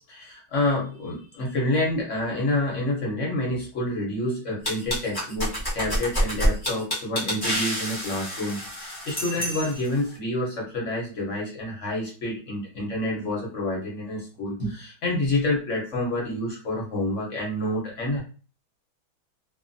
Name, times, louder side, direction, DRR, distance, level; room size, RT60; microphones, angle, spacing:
voice 1, 0.1-18.2, left 1 dB, 50° left, -2 dB, 0.9 m, -28 dB
sound 1, 4.6-10.0, equal, 30° left, 0.4 m, -28 dB
3.2 x 2.2 x 2.6 m, 0.37 s
omnidirectional pair, 2.2 m